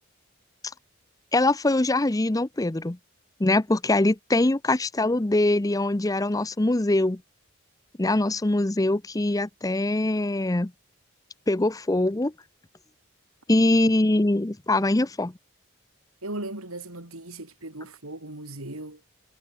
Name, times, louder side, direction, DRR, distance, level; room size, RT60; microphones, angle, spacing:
voice 1, 1.3-3.0 3.4-7.2 8.0-10.7 11.5-12.3 13.5-15.3, left 2 dB, 15° left, 0.6 m, -23 dB
voice 2, 16.2-19.0, right 2 dB, 80° right, 5.3 m, -37 dB
head